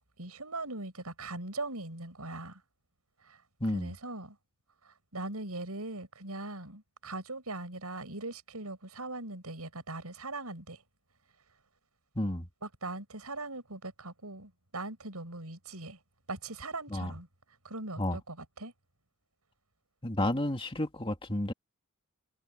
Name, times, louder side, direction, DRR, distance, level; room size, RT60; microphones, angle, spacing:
voice 1, 0.2-2.6 3.2-3.4 3.7-4.4 4.9-10.8 12.6-16.0 16.3-17.3 17.6-18.7, right 2 dB, 80° right, 6.5 m, -40 dB
voice 2, 12.2-12.5 16.9-17.1 18.0-18.2 20.0-21.5, left 1 dB, 25° left, 2.5 m, -31 dB
head